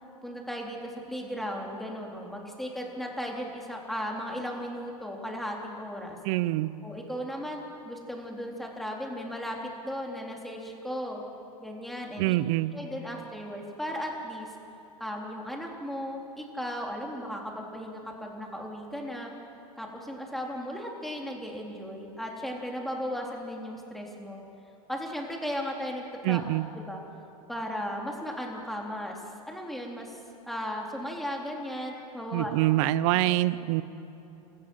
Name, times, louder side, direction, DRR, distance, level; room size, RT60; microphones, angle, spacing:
voice 1, 0.2-6.2 6.8-11.2 11.6-12.4 12.7-14.5 15.0-19.3 19.8-24.4 24.9-26.4 26.8-27.0 27.5-30.2 30.5-32.7 33.1-33.4, equal, ahead, -1 dB, 3.7 m, -36 dB
voice 2, 6.2-6.7 12.2-12.7 26.2-26.6 32.3-33.8, right 16 dB, 55° right, 18 dB, 0.8 m, -25 dB
28.5 x 15.0 x 6.3 m, 3.0 s
hypercardioid pair, 100°, 19 cm